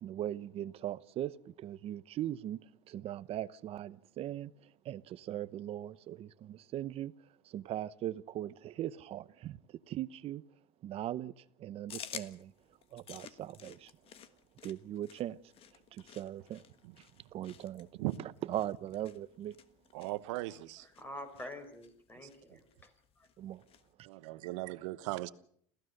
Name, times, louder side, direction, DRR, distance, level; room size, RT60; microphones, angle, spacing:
voice 1, 0.0-2.6 2.9-4.5 4.9-7.1 7.5-9.6 9.9-10.4 10.8-11.3 11.6-12.5 12.9-13.9 14.6-15.4 15.9-16.6 17.3-17.9 18.5-19.6 23.4-23.6, right 12 dB, 40° right, 0.8 m, -39 dB
sound 1, 11.9-23.9, left 9 dB, 35° left, 1.4 m, -53 dB
voice 2, 19.9-20.9 22.2-22.3 24.0-25.3, right 18 dB, 75° right, 1.1 m, -38 dB
voice 3, 20.8-22.9 23.2-23.3, left 1 dB, 10° left, 4.6 m, -47 dB
27.5 x 15.5 x 6.6 m
supercardioid pair, 135°, 16 cm